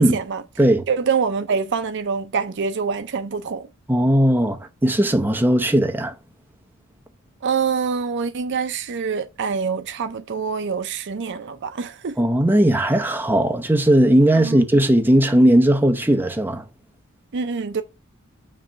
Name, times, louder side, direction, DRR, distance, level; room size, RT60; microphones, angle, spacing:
voice 1, 0.0-0.4 0.9-3.7 7.4-12.2 14.3-14.6 17.3-17.8, right 5 dB, 55° right, 0.5 m, -25 dB
voice 2, 3.9-6.1 12.2-16.6, right 1 dB, 10° right, 0.8 m, -17 dB
7.5 x 3.0 x 5.7 m
head